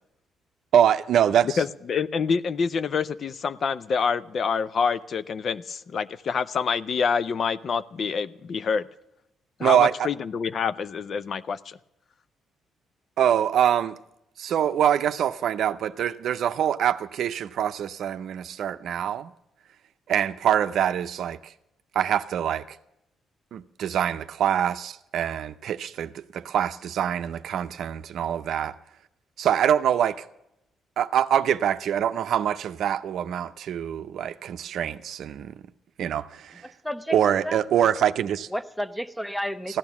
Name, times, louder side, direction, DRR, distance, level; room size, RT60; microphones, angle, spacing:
voice 1, 0.7-1.6 9.6-10.1 13.2-14.0 14.4-19.3 20.1-21.5 21.9-22.8 23.5-28.7 29.4-30.2 31.0-35.5 36.0-36.7 37.1-38.5 39.7-39.8, right 9 dB, 70° right, 11 dB, 0.5 m, -24 dB
voice 2, 1.6-8.9 9.6-11.8, left 6 dB, 55° left, 16 dB, 0.5 m, -27 dB
voice 3, 36.6-37.6 38.5-39.8, equal, ahead, 13 dB, 0.7 m, -32 dB
15.0 x 10.5 x 7.1 m, 0.85 s
cardioid pair, 90°, 0 cm